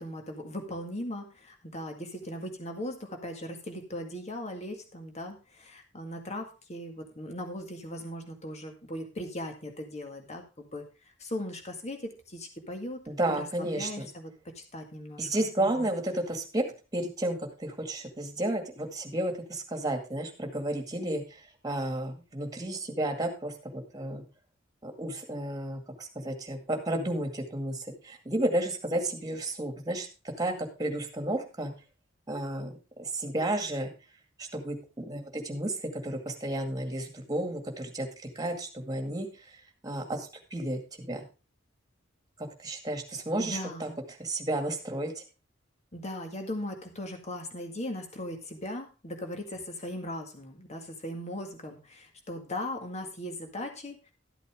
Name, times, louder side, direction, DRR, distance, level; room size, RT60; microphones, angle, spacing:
voice 1, 0.0-13.0 13.3-15.3 15.6-16.0 43.4-44.0 45.9-54.1, left 1 dB, 35° left, 4 dB, 1.9 m, -38 dB
voice 2, 13.1-14.1 15.2-16.6 16.9-24.2 24.8-31.7 32.3-32.7 33.0-33.9 34.4-39.3 39.8-41.2 42.4-43.9 44.2-45.2, right 1 dB, 20° right, 4 dB, 2.1 m, -32 dB
12.5 x 8.4 x 3.6 m, 0.32 s
head